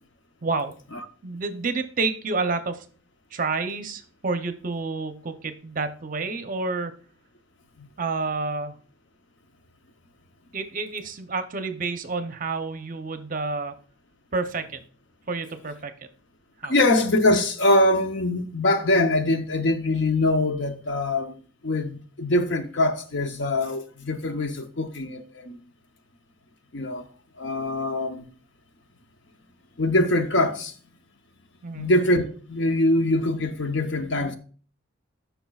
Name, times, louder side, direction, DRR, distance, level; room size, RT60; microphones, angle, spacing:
voice 1, 0.4-0.7 1.2-2.9 3.3-6.9 8.0-8.7 10.5-13.7 14.3-14.8 15.3-15.9 16.6-16.7 31.6-31.9, right 3 dB, 40° right, 0.7 m, -29 dB
voice 2, 16.6-21.3 21.6-25.6 26.7-27.0 27.4-28.3 29.8-30.7 31.7-34.4, left 1 dB, 60° left, 0.8 m, -23 dB
12.5 x 5.7 x 2.3 m
head